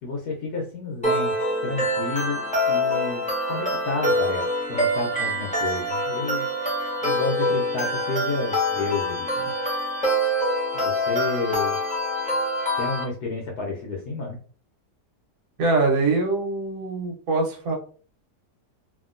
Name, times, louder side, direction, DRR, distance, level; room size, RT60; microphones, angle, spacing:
voice 1, 0.0-1.3 1.6-3.2 3.5-6.5 7.0-9.5 10.7-11.8 12.8-14.4, left 3 dB, 75° left, -1 dB, 1.2 m, -30 dB
sound 1, 1.0-13.0, equal, 10° left, 0.3 m, -25 dB
voice 2, 15.6-17.7, right 3 dB, 60° right, -1 dB, 1.3 m, -23 dB
2.8 x 2.7 x 2.5 m, 0.42 s
omnidirectional pair, 1.8 m